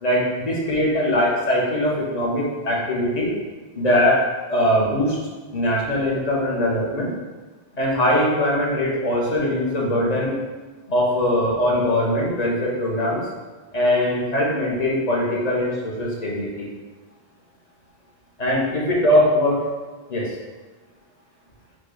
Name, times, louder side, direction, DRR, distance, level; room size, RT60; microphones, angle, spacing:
voice 1, 0.0-3.3 3.8-4.2 4.5-5.2 5.5-7.1 7.7-10.4 10.9-13.2 13.7-16.7 18.4-19.6 20.1-20.3, left 1 dB, 40° left, -4 dB, 1.1 m, -21 dB
4.5 x 2.4 x 4.9 m, 1.3 s
omnidirectional pair, 1.1 m